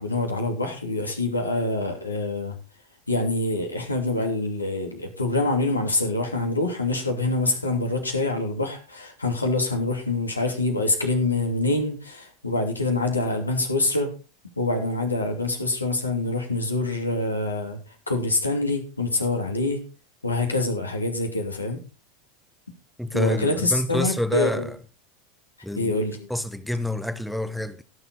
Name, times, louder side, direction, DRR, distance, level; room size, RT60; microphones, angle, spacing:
voice 1, 0.0-2.5 3.1-14.1 14.6-17.8 18.1-19.8 20.2-21.8 23.1-24.7 25.8-26.3, left 2 dB, 85° left, 2.8 m, -25 dB
voice 2, 23.0-24.7 25.6-26.0 26.3-27.8, left 1 dB, ahead, 1.1 m, -27 dB
18.0 x 7.1 x 4.0 m
figure-of-eight pair, 85°, 0 cm